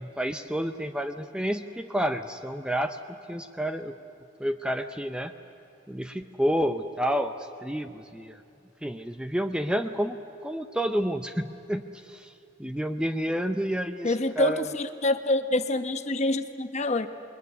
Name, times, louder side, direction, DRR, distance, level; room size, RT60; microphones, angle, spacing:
voice 1, 0.0-3.0 3.3-4.0 4.4-5.3 5.9-8.4 8.8-10.2 10.4-12.3 12.6-14.7, equal, 5° right, 8 dB, 0.6 m, -29 dB
voice 2, 14.0-17.1, left 2 dB, 35° left, 9 dB, 1.0 m, -26 dB
27.5 x 21.5 x 9.7 m, 2.7 s
head